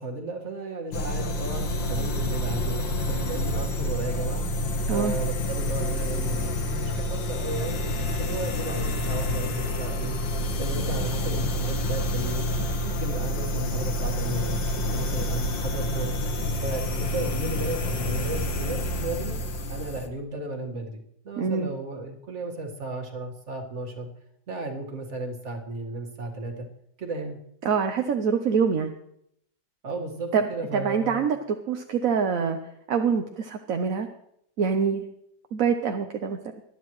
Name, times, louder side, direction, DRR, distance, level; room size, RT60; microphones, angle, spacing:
voice 1, 0.0-4.5 4.9-19.4 19.7-24.1 24.5-26.7 27.0-27.4 29.8-31.2, right 2 dB, 40° right, 2 dB, 2.0 m, -34 dB
sound 1, 0.9-20.1, left 1 dB, 85° left, 2.0 m, -28 dB
voice 2, 21.4-21.7 27.6-28.9 30.3-30.5 30.7-31.4 31.7-32.6 32.9-34.1 34.6-35.0 35.5-36.4, right 6 dB, 55° right, 4 dB, 1.1 m, -25 dB
20.5 x 12.0 x 3.1 m, 0.75 s
omnidirectional pair, 1.9 m